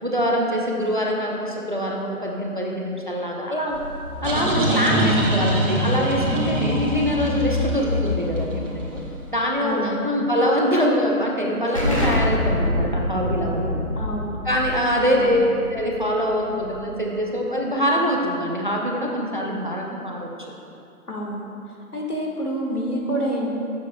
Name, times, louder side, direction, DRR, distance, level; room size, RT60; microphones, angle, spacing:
voice 1, 0.0-3.8 4.2-8.8 9.3-13.8 14.4-20.3, equal, 35° right, -1 dB, 0.5 m, -24 dB
sound 1, 3.7-9.3, equal, 55° right, 1.6 m, -24 dB
voice 2, 4.7-5.3 9.6-10.1 14.0-14.4 15.1-15.6 21.1-21.5 21.9-23.5, equal, 80° left, -1 dB, 1.6 m, -28 dB
Explosion, 11.7-17.1, left 1 dB, 25° left, 0.8 m, -26 dB
10.5 x 7.3 x 2.2 m, 2.7 s
figure-of-eight pair, 150°, 44 cm